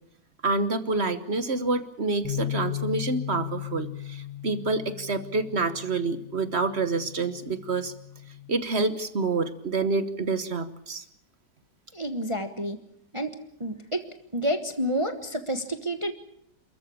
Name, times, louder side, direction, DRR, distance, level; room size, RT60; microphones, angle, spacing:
voice 1, 0.4-7.9 8.5-11.0, right 3 dB, 40° right, 12 dB, 1.3 m, -27 dB
sound 1, 2.2-8.5, left 13 dB, 85° right, 5.7 m, -36 dB
voice 2, 11.9-12.8 13.1-13.3 13.6-14.1 14.3-16.1, equal, 20° right, 7 dB, 1.2 m, -29 dB
28.5 x 14.0 x 8.5 m, 0.71 s
omnidirectional pair, 1.9 m